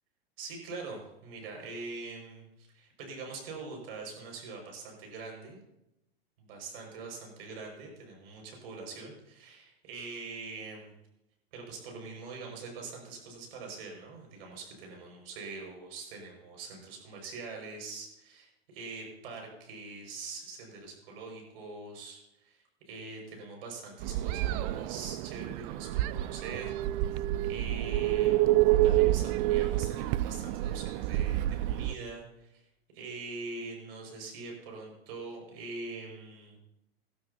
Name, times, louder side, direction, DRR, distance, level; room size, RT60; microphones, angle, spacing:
voice 1, 0.4-5.6 6.4-10.9 11.5-27.1 27.4-32.6 32.9-36.6, right 3 dB, 65° right, 1 dB, 6.1 m, -43 dB
sound 1, 24.0-31.9, right 15 dB, 40° right, 0.4 m, -28 dB
19.5 x 12.5 x 2.9 m, 0.88 s
hypercardioid pair, 120°, 31 cm